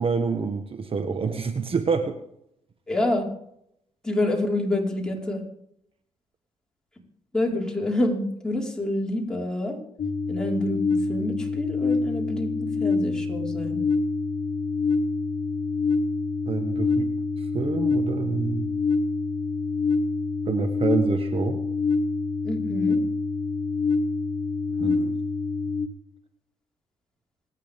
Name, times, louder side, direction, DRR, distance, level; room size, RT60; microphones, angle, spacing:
voice 1, 0.0-2.2 16.5-17.1 17.5-18.7 20.5-21.6 24.8-25.1, right 5 dB, 45° right, 7 dB, 1.5 m, -27 dB
voice 2, 2.9-3.2 4.0-5.4 7.3-9.8 10.3-10.8 11.1-13.8 22.4-23.0, left 1 dB, 5° left, -2 dB, 5.1 m, -27 dB
sound 1, 10.0-25.9, left 4 dB, 45° left, 2.0 m, -26 dB
26.5 x 10.0 x 3.8 m, 0.76 s
supercardioid pair, 65°, 13 cm